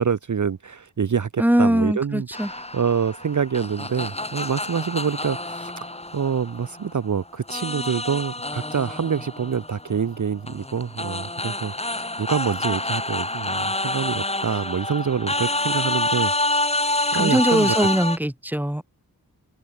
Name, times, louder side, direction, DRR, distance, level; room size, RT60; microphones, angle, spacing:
voice 1, 0.0-5.7 6.1-16.8 17.1-17.9, right 7 dB, 50° right, 0.7 m, -26 dB
voice 2, 1.4-2.5 17.1-18.8, right 1 dB, 5° right, 1.7 m, -21 dB
sound 1, 2.3-7.0 7.5-18.2, left 2 dB, 15° left, 1.3 m, -28 dB
open air
wide cardioid pair, 60°, 38 cm